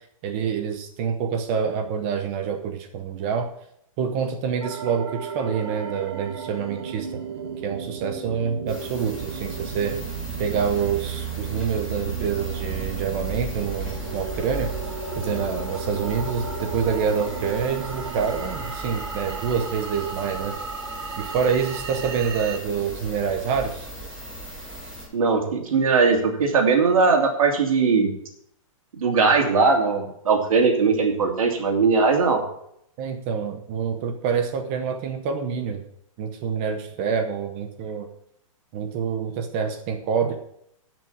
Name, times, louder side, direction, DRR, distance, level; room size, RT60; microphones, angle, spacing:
voice 1, 0.2-3.5 4.0-7.2 7.6-10.0 10.4-14.7 15.2-20.5 21.2-23.9 33.0-35.8 36.2-38.1 38.7-40.4, right 6 dB, 20° right, 6 dB, 0.7 m, -26 dB
sound 1, 4.6-22.6, right 6 dB, 45° right, 1.4 m, -34 dB
sound 2, 8.7-25.0, right 1 dB, 5° right, 3.0 m, -36 dB
voice 2, 25.1-28.1 29.0-32.4, right 4 dB, 80° right, 2 dB, 3.0 m, -20 dB
11.0 x 6.1 x 7.2 m, 0.71 s
hypercardioid pair, 180°, 18 cm